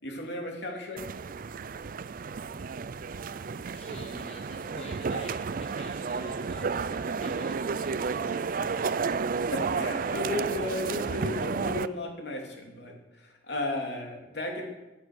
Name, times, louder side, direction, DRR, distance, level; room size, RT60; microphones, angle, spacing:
voice 1, 0.0-1.0 9.4-14.6, left 2 dB, 65° left, 0 dB, 3.3 m, -34 dB
sound 1, 1.0-11.9, right 5 dB, 50° right, 0.4 m, -32 dB
voice 2, 3.7-9.1, left 2 dB, 35° left, 1 dB, 1.3 m, -47 dB
16.5 x 9.7 x 6.4 m, 1.0 s
head